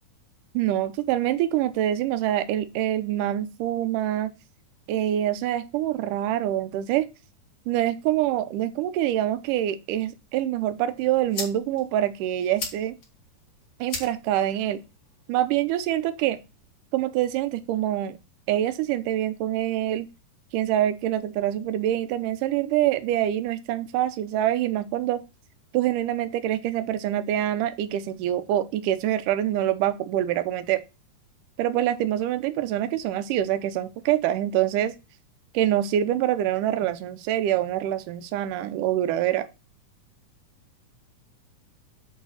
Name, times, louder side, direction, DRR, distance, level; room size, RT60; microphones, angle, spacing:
voice 1, 0.5-4.3 4.9-7.0 7.7-12.9 13.8-14.8 15.3-16.4 16.9-18.2 18.5-20.1 20.5-25.2 25.7-30.8 31.6-34.9 35.5-39.5, right 12 dB, 80° right, 2.3 m, -25 dB
sound 1, 10.7-16.7, left 3 dB, 40° left, 2.7 m, -41 dB
8.7 x 3.9 x 5.7 m
omnidirectional pair, 3.8 m